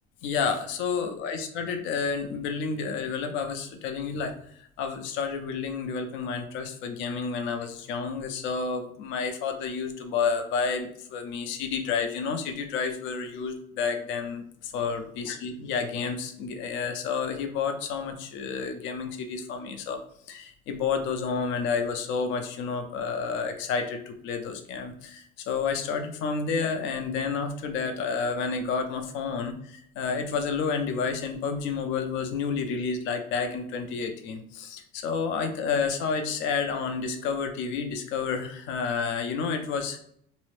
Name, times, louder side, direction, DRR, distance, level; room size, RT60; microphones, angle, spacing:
voice 1, 0.2-4.3 4.8-20.0 20.3-40.0, left 5 dB, 70° left, 6 dB, 0.5 m, -30 dB
2.6 x 2.0 x 3.0 m, 0.65 s
cardioid pair, 110°, 20 cm